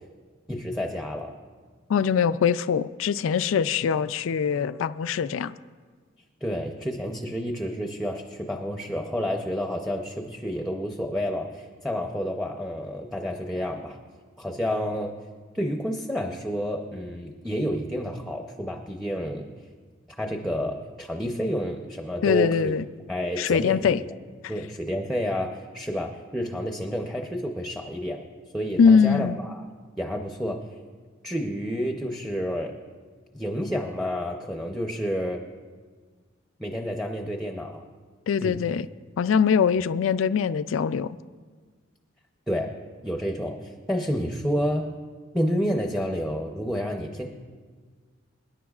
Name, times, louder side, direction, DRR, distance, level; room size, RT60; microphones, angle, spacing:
voice 1, 0.5-1.3 6.4-14.0 14.4-15.1 15.5-19.5 20.2-22.7 23.1-24.1 24.5-28.2 28.5-29.6 30.0-30.6 31.2-32.7 33.3-35.4 36.6-37.8 38.4-38.6 42.5-42.7 43.0-44.9 45.3-47.3, equal, ahead, 0.7 m, -29 dB
voice 2, 1.9-5.5 22.2-22.8 23.4-24.0 28.8-29.4 38.3-38.9 39.2-41.2, left 6 dB, 70° left, 0.3 m, -22 dB
26.5 x 10.5 x 2.4 m
head